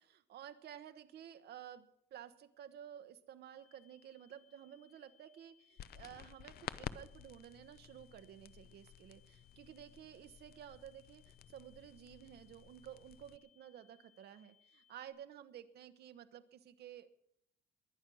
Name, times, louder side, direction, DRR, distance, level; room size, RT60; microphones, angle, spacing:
voice 1, 0.0-17.1, right 10 dB, 60° right, 9 dB, 1.1 m, -53 dB
sound 1, 3.5-15.1, left 9 dB, ahead, 6.0 m, -71 dB
sound 2, 5.8-13.4, left 10 dB, 55° left, 0.6 m, -52 dB
20.5 x 10.5 x 6.3 m, 0.72 s
cardioid pair, 165°, 19 cm